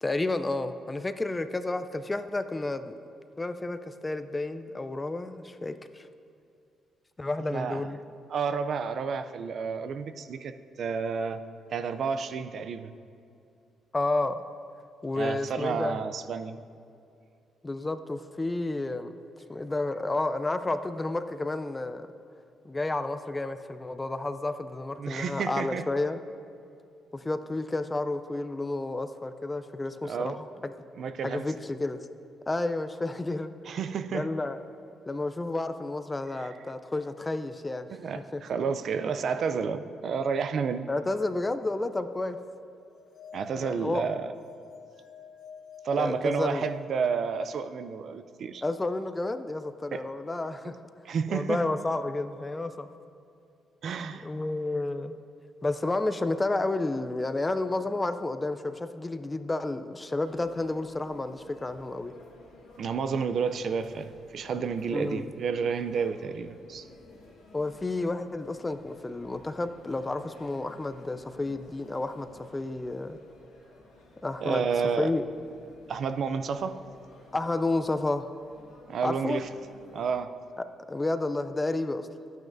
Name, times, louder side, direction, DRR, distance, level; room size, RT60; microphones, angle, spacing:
voice 1, 0.0-2.9 3.4-6.1 7.2-8.0 13.9-14.4 15.0-16.0 17.6-19.1 19.5-22.1 22.6-26.2 27.1-30.9 31.2-32.0 32.5-33.5 34.1-34.6 35.1-37.9 38.1-38.4 40.9-42.4 43.6-44.0 46.0-46.7 48.6-50.8 51.3-52.9 54.1-55.2 55.6-62.1 64.9-65.3 67.5-73.2 74.2-74.6 75.0-75.2 77.3-78.3 79.0-79.4 80.9-82.1, left 2 dB, 20° left, 10 dB, 0.4 m, -31 dB
voice 2, 7.5-7.8 8.3-10.5 10.8-11.4 11.7-12.9 15.1-16.6 25.0-25.8 30.0-30.4 31.0-31.5 33.7-34.3 36.4-36.5 37.9-40.9 43.3-44.3 45.8-48.6 49.9-50.0 50.6-50.7 51.1-51.6 53.8-54.3 62.8-66.9 74.4-75.1 75.9-76.8 78.9-79.5 79.9-80.3, right 6 dB, 60° right, 10 dB, 0.4 m, -30 dB
sound 1, 42.9-47.7, left 7 dB, 70° left, 0.9 m, -48 dB
sound 2, 60.2-80.1, left 2 dB, 90° left, 2.1 m, -54 dB
11.5 x 9.1 x 2.6 m, 2.6 s
cardioid pair, 90°, 0 cm